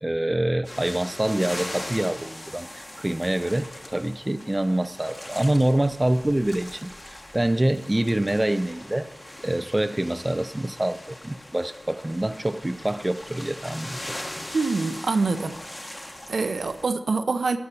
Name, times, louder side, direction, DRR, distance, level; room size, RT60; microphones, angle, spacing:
voice 1, 0.0-9.1 9.4-14.0, right 1 dB, 20° right, 0.4 m, -26 dB
sound 1, 0.6-16.9, left 1 dB, 25° left, 1.3 m, -40 dB
voice 2, 14.5-15.6 15.8-17.6, right 4 dB, 70° right, 0.7 m, -25 dB
12.0 x 5.6 x 6.8 m
cardioid pair, 55°, 0 cm